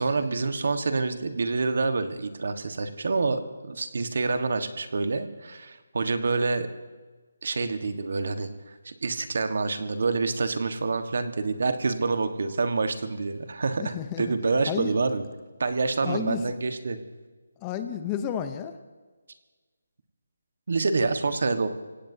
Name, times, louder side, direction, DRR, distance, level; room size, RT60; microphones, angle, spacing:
voice 1, 0.0-6.7 7.4-15.2 15.6-17.0 20.7-21.7, right 3 dB, 60° right, 8 dB, 1.5 m, -27 dB
voice 2, 13.8-14.3 14.7-14.9 16.0-16.4 17.6-18.7, left 9 dB, 15° left, 9 dB, 0.8 m, -31 dB
26.0 x 17.0 x 2.8 m, 1.3 s
hypercardioid pair, 165°, 0 cm